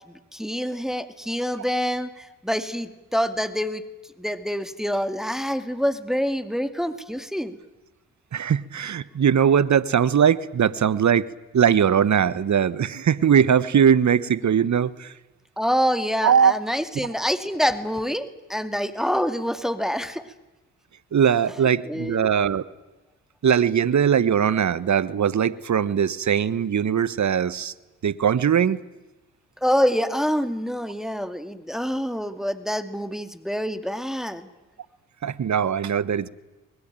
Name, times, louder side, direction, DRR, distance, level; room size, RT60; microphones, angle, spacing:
voice 1, 0.1-3.8 4.2-7.6 15.6-20.2 21.9-22.3 29.6-34.5, equal, ahead, 9 dB, 2.3 m, -26 dB
voice 2, 8.3-11.3 11.5-15.1 16.2-16.5 17.0-17.1 21.1-22.6 23.4-27.7 28.0-28.8 35.2-36.3, right 8 dB, 45° right, 18 dB, 1.2 m, -20 dB
24.0 x 21.0 x 9.0 m, 1.1 s
hypercardioid pair, 45°, 39 cm